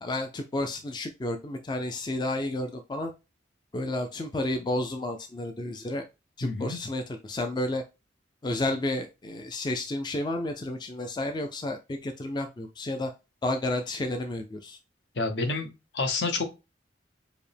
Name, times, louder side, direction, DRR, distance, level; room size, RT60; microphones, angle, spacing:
voice 1, 0.0-3.1 3.7-6.0 6.4-7.8 8.4-13.1 13.4-14.8, left 1 dB, 25° left, 5 dB, 0.3 m, -31 dB
voice 2, 6.4-6.8 15.2-16.5, left 3 dB, 65° left, 6 dB, 0.8 m, -29 dB
4.8 x 2.0 x 3.3 m, 0.27 s
head